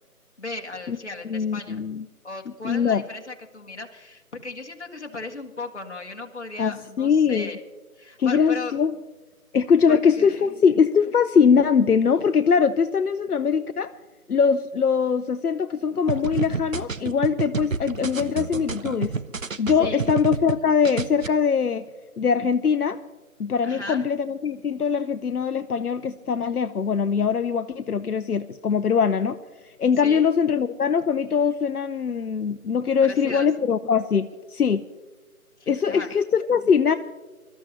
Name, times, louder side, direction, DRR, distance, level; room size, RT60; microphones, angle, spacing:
voice 1, 0.4-1.8 2.2-7.6 8.0-8.8 9.9-10.4 19.8-20.1 23.6-24.0 30.0-30.2 33.0-33.5 35.6-36.1, left 3 dB, 50° left, 2 dB, 1.7 m, -36 dB
voice 2, 1.2-2.0 2.6-3.0 6.6-7.5 8.2-8.9 9.5-13.9 14.3-19.1 19.6-21.8 22.2-23.0 23.4-29.4 29.6-34.8 35.7-36.9, left 6 dB, 80° left, 10 dB, 0.7 m, -22 dB
sound 1, 16.1-20.6 20.8-21.3, right 5 dB, 60° right, 0.7 m, -29 dB
24.5 x 13.0 x 2.9 m, 1.3 s
figure-of-eight pair, 175°, 45 cm